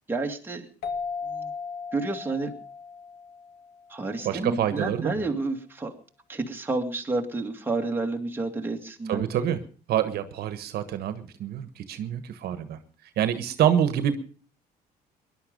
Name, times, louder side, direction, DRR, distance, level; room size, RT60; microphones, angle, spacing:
voice 1, 0.1-0.6 1.3-1.5 1.9-2.5 3.9-5.9 6.3-9.2, right 3 dB, 10° right, 2 dB, 2.4 m, -30 dB
sound 1, 0.8-4.1, left 5 dB, 70° left, 1.8 m, -36 dB
voice 2, 4.2-5.1 9.1-9.6 9.9-12.8 13.2-14.2, right 10 dB, 70° right, 11 dB, 1.4 m, -26 dB
20.0 x 11.5 x 5.3 m, 0.41 s
cardioid pair, 110°, 17 cm